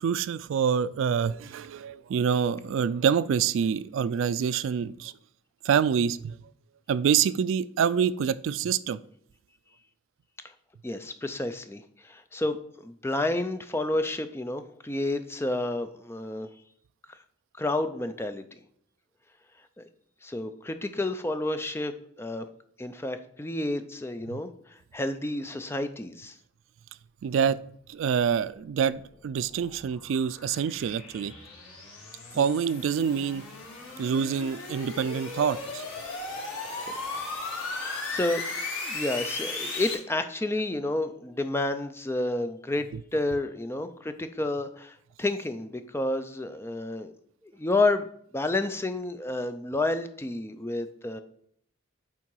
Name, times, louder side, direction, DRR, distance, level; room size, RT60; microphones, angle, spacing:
voice 1, 0.0-5.1 5.6-6.4 6.9-9.0 27.2-27.6 27.9-31.3 32.3-33.4 34.0-35.8, right 7 dB, 75° right, 17 dB, 0.3 m, -26 dB
voice 2, 10.8-12.6 12.8-16.5 17.1-17.2 17.6-18.4 19.8-19.9 20.2-21.9 22.2-22.5 22.8-26.4 32.3-32.5 37.7-38.4 38.8-42.9 43.1-47.1 47.4-48.1 48.3-51.2, left 2 dB, 10° left, 9 dB, 0.4 m, -30 dB
sound 1, 29.0-39.9, left 3 dB, 85° left, 2.5 m, -37 dB
8.5 x 3.6 x 4.6 m, 0.66 s
head